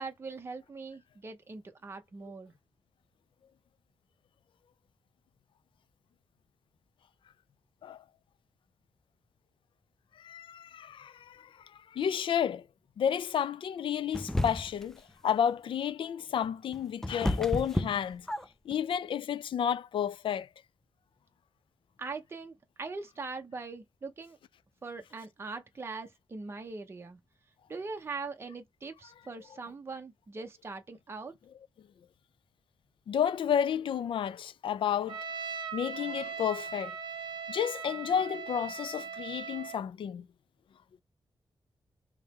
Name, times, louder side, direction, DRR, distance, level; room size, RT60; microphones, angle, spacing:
voice 1, 0.0-2.5 22.0-24.4 24.8-27.2 27.7-31.3, right 4 dB, 30° right, 0.7 m, -41 dB
voice 2, 10.2-12.6 13.0-18.3 18.7-20.5 33.1-35.2 35.7-36.9 37.5-40.3, left 8 dB, 75° left, 0.3 m, -31 dB
sound 1, 14.1-14.9 16.4-18.7, left 1 dB, 5° left, 0.4 m, -32 dB
Trumpet, 35.1-39.8, right 6 dB, 60° right, 0.7 m, -39 dB
3.6 x 2.9 x 4.2 m
wide cardioid pair, 150°, 9 cm